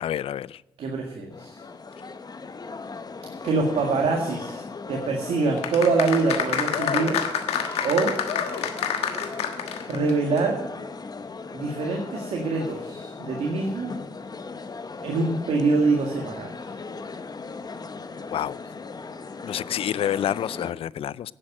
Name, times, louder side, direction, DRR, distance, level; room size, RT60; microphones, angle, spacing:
voice 1, 0.0-0.6 18.3-18.6 19.4-21.3, left 10 dB, 65° left, 0.4 m, -28 dB
voice 2, 0.8-1.6 3.4-4.6 4.9-7.2 7.8-8.1 9.9-10.7 11.5-14.0 15.0-16.5, right 3 dB, 75° right, 1.9 m, -24 dB
sound 1, 1.3-20.7, left 4 dB, 40° left, 1.1 m, -38 dB
sound 2, 5.6-10.1 10.4-10.5, left 8 dB, 85° left, 1.3 m, -27 dB
11.0 x 7.6 x 9.9 m
supercardioid pair, 50°, 10 cm